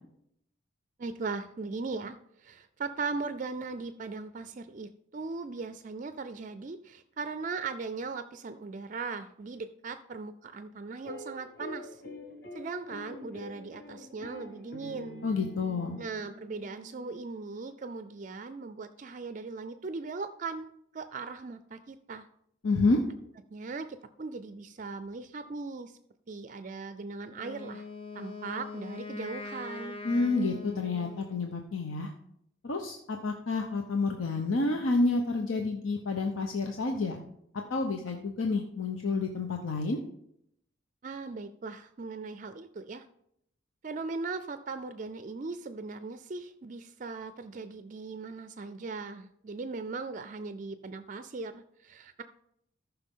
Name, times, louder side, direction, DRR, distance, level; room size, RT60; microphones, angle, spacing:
voice 1, 1.0-12.0 12.5-15.2 16.0-22.3 23.5-26.0 26.3-27.9 28.1-30.0 41.0-43.1 43.8-52.2, right 4 dB, 40° right, 11 dB, 0.4 m, -39 dB
sound 1, 11.0-17.6, left 1 dB, 45° left, 1.5 m, -46 dB
voice 2, 15.2-16.0 22.6-23.0 30.0-32.1 32.6-37.2 37.7-40.0, left 3 dB, 80° left, 3 dB, 0.8 m, -29 dB
Wind instrument woodwind instrument, 27.4-31.5, left 3 dB, 30° left, 0.8 m, -42 dB
14.0 x 5.8 x 3.7 m, 0.74 s
head